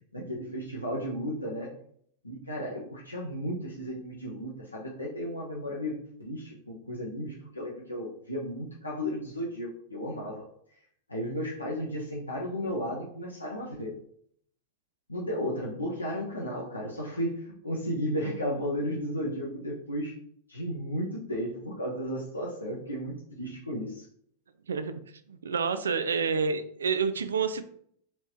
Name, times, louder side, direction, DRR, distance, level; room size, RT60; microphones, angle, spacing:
voice 1, 0.1-1.7 2.2-10.5 11.1-13.9 15.1-20.2 20.5-24.1, equal, 85° left, -4 dB, 0.7 m, -34 dB
voice 2, 24.7-25.0 25.3-27.7, right 5 dB, 70° right, 11 dB, 0.3 m, -28 dB
4.4 x 3.0 x 2.8 m, 0.65 s
figure-of-eight pair, 90°, 0 cm